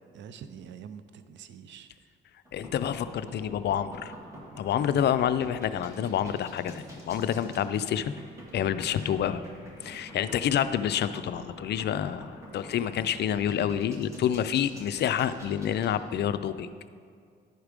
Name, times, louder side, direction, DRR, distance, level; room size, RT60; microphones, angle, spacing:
voice 1, 0.1-1.9 9.8-10.1, right 7 dB, 65° right, 11 dB, 0.5 m, -45 dB
sound 1, 2.4-15.9, equal, 15° right, 2.2 m, -46 dB
voice 2, 2.5-4.1 4.6-8.1 8.5-9.4 9.8-16.7, left 9 dB, 60° left, 12 dB, 0.4 m, -28 dB
11.0 x 4.7 x 5.0 m, 2.1 s
cardioid pair, 90°, 20 cm